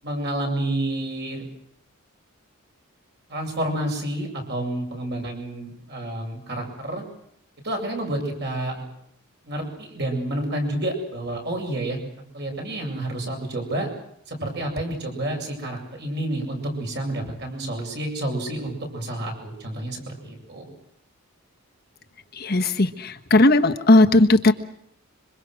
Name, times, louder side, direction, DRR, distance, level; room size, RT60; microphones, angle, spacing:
voice 1, 0.0-1.4 3.3-7.0 7.6-8.8 9.4-12.0 12.3-13.9 14.3-20.7, right 1 dB, 50° right, 2 dB, 7.8 m, -29 dB
voice 2, 22.4-24.5, left 2 dB, 45° left, 6 dB, 1.3 m, -17 dB
26.5 x 25.0 x 6.4 m, 0.71 s
head